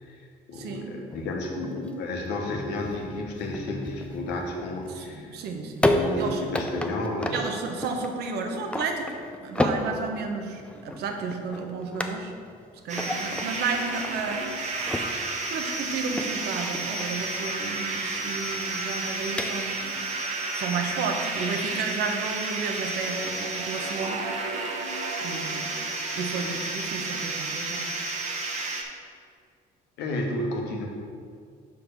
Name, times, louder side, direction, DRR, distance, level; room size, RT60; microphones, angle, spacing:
voice 1, 0.0-5.3 5.8-7.5 30.0-30.9, left 2 dB, 85° left, 1 dB, 1.3 m, -32 dB
voice 2, 0.5-1.0 4.9-5.9 6.2-6.4 7.3-12.3 12.8-14.4 15.5-20.0 20.5-24.3 25.2-25.7 26.2-27.9, right 4 dB, 75° right, 4 dB, 0.9 m, -32 dB
sound 1, 1.1-20.0, left 1 dB, 5° left, 0.5 m, -33 dB
sound 2, 12.9-28.8, right 3 dB, 45° right, 1.0 m, -31 dB
5.6 x 4.9 x 6.5 m, 2.2 s
cardioid pair, 110°, 17 cm